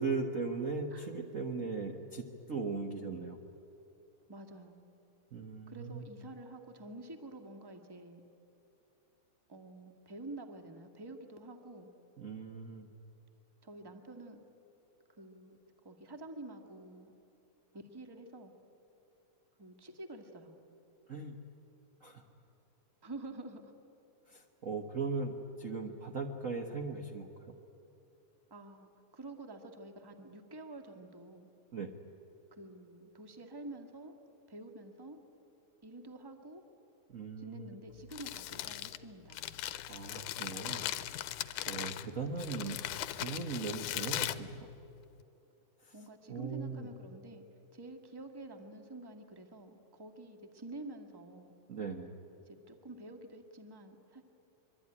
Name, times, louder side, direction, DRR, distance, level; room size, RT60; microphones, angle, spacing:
voice 1, 0.0-3.5 5.3-6.0 12.2-12.9 21.1-21.4 22.0-22.2 24.3-27.5 31.7-31.9 37.1-37.7 39.9-40.9 41.7-42.8 43.1-44.7 45.8-45.9 46.3-46.9 51.7-52.1, right 4 dB, 65° right, 2 dB, 0.7 m, -38 dB
voice 2, 4.3-4.8 5.7-8.2 9.5-11.9 13.6-14.4 15.2-17.1 17.7-18.5 19.6-20.6 21.3-21.4 23.0-23.6 28.5-31.5 32.5-34.1 34.5-35.2 35.8-36.6 37.4-39.6 45.9-47.4 47.7-51.5 52.5-54.2, right 2 dB, 15° right, 5 dB, 0.9 m, -48 dB
Crumpling crinkling, 37.9-45.2, left 13 dB, 85° left, 2.3 m, -39 dB
24.5 x 23.5 x 9.9 m, 2.8 s
omnidirectional pair, 3.6 m